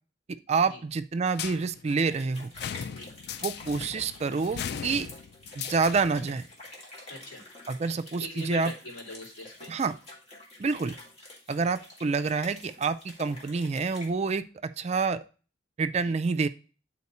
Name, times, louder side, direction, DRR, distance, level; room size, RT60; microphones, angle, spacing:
voice 1, 0.5-2.5 3.4-5.1 5.6-6.5 7.7-8.7 9.7-9.9 10.6-11.0 11.5-15.2 15.8-16.5, right 4 dB, 35° right, 10 dB, 0.3 m, -28 dB
sound 1, 1.3-6.3, left 8 dB, 55° left, 0.3 m, -38 dB
sound 2, 2.0-14.1, left 2 dB, 35° left, 2.2 m, -48 dB
voice 2, 7.1-7.4 8.2-9.7 16.0-16.1, left 1 dB, 75° left, -3 dB, 3.2 m, -42 dB
9.6 x 4.4 x 4.2 m, 0.37 s
head